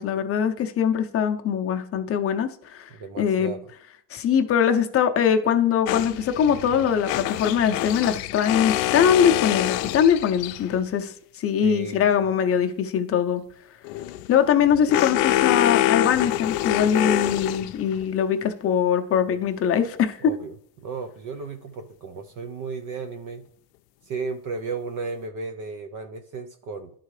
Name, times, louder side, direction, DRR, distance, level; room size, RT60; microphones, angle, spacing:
voice 1, 0.0-2.9 3.2-3.5 4.1-13.4 14.3-20.2, left 8 dB, 30° left, 6 dB, 0.7 m, -22 dB
voice 2, 2.9-3.7 11.6-12.3 20.2-23.4 24.0-26.9, right 4 dB, 45° right, 7 dB, 0.6 m, -34 dB
sound 1, 5.9-10.8 13.8-18.1, left 14 dB, 80° left, 0.5 m, -26 dB
11.0 x 3.8 x 3.2 m, 0.66 s
supercardioid pair, 105°, 46 cm